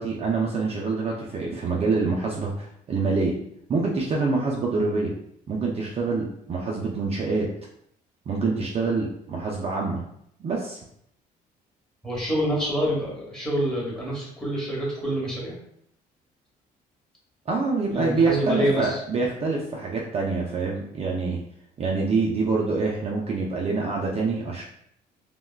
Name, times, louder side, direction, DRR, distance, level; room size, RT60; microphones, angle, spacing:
voice 1, 0.0-3.3 3.7-5.1 5.5-7.5 8.3-10.0 10.4-10.8 17.5-21.4 21.8-24.6, right 4 dB, 35° right, -2 dB, 0.5 m, -26 dB
voice 2, 12.0-15.6 17.9-19.0, right 1 dB, 5° left, -5 dB, 1.2 m, -27 dB
3.4 x 2.2 x 2.3 m, 0.71 s
cardioid pair, 110°, 17 cm